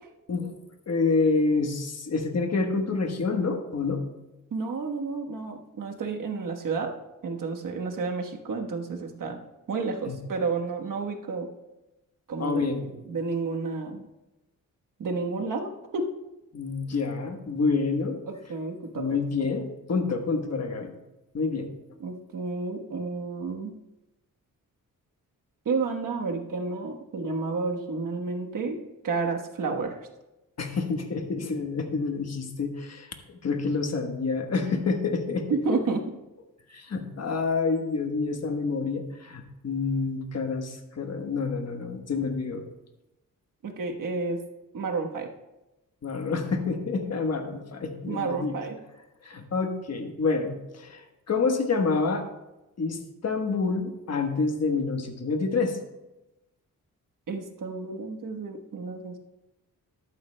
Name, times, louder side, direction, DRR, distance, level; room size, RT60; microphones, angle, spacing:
voice 1, 0.9-4.0 10.1-10.2 12.4-12.9 16.5-18.2 18.9-21.0 21.3-21.7 30.6-35.5 36.7-42.7 46.0-48.6 49.2-52.2 52.8-55.8, left 4 dB, 50° left, 5 dB, 1.3 m, -28 dB
voice 2, 4.5-7.0 7.2-9.4 9.7-11.5 12.3-12.7 13.1-14.0 15.0-16.1 18.3-19.1 22.0-23.7 25.6-28.8 29.0-30.0 35.5-36.0 43.6-44.4 44.7-45.3 48.1-48.7 57.3-59.2, right 4 dB, 70° right, 3 dB, 1.3 m, -31 dB
13.5 x 11.5 x 2.2 m, 0.99 s
wide cardioid pair, 115°, 33 cm